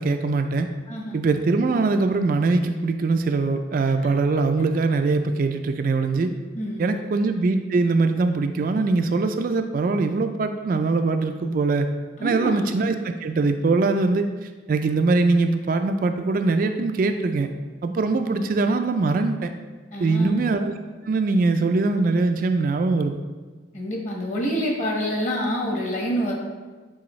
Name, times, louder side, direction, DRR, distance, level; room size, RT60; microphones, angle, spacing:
voice 1, 0.0-0.7 1.1-6.3 6.8-11.9 12.2-17.5 17.8-19.5 20.0-20.7 21.0-23.2, right 3 dB, 45° right, 7 dB, 0.3 m, -22 dB
voice 2, 6.5-6.9 12.2-12.6 19.9-20.4 23.7-26.3, equal, 40° left, -2 dB, 1.2 m, -27 dB
8.5 x 4.2 x 3.1 m, 1.3 s
head